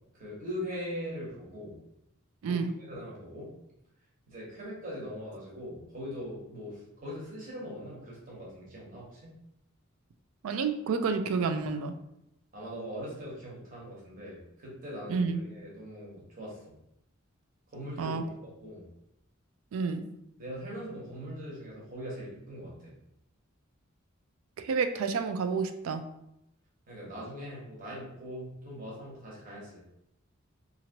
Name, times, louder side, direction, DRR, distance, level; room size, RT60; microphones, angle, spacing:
voice 1, 0.1-1.8 2.4-3.5 4.3-9.3 12.5-16.6 17.7-18.3 18.6-18.9 20.4-22.9 26.9-29.8, equal, 40° right, -6 dB, 1.2 m, -41 dB
voice 2, 10.4-11.9 15.1-15.4 18.0-18.2 19.7-20.1 24.6-26.0, right 5 dB, 90° right, 8 dB, 0.3 m, -29 dB
2.9 x 2.5 x 2.8 m, 0.82 s
head